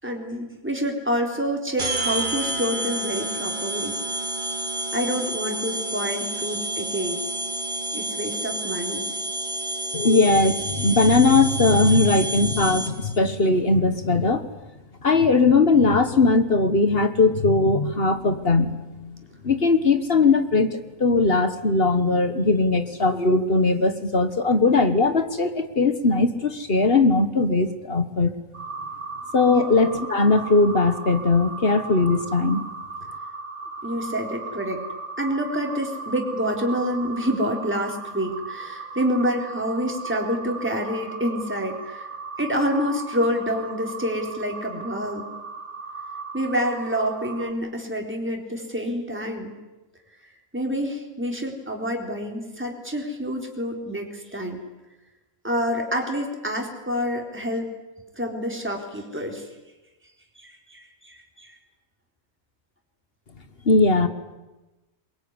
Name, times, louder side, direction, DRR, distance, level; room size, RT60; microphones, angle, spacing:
voice 1, 0.0-3.9 4.9-7.2 7.9-9.1 29.5-29.6 33.8-34.8 35.2-42.1 42.4-45.3 46.3-49.6 50.5-54.6 55.4-57.7 58.2-59.5 60.4-61.5, equal, 10° right, 1 dB, 3.9 m, -27 dB
sound 1, 1.8-13.2, right 1 dB, 35° right, 2.1 m, -29 dB
voice 2, 9.9-14.4 15.0-19.2 19.4-28.3 29.3-32.6 63.6-64.1, left 3 dB, 45° left, 10 dB, 1.6 m, -19 dB
sound 2, 28.5-47.5, right 4 dB, 85° right, 2.1 m, -37 dB
22.5 x 22.0 x 9.7 m, 1.1 s
omnidirectional pair, 1.5 m